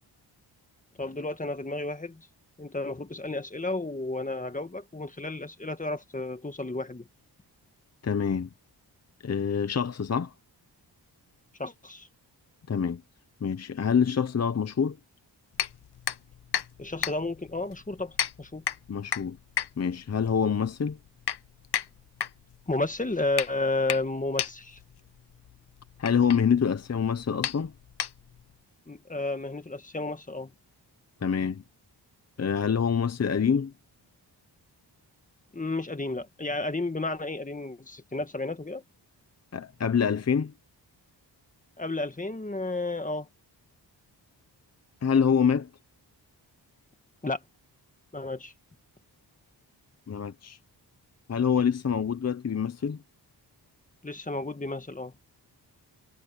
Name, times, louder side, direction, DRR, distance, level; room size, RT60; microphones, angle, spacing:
voice 1, 1.0-2.2 2.6-7.0 11.6-12.1 16.8-18.6 22.7-24.8 28.9-30.5 35.5-38.8 41.8-43.3 47.2-47.4 48.1-48.5 54.0-55.1, left 2 dB, 20° left, 1.7 m, -32 dB
voice 2, 8.0-8.5 9.2-10.3 12.7-13.0 13.4-15.0 18.9-19.4 19.8-21.0 26.0-27.7 31.2-31.6 32.4-33.7 39.5-40.5 45.0-45.7 50.1-50.6 51.3-53.0, left 7 dB, 35° left, 0.8 m, -26 dB
sound 1, 15.5-28.6, left 9 dB, 65° left, 1.0 m, -35 dB
wide cardioid pair, 125°, 42 cm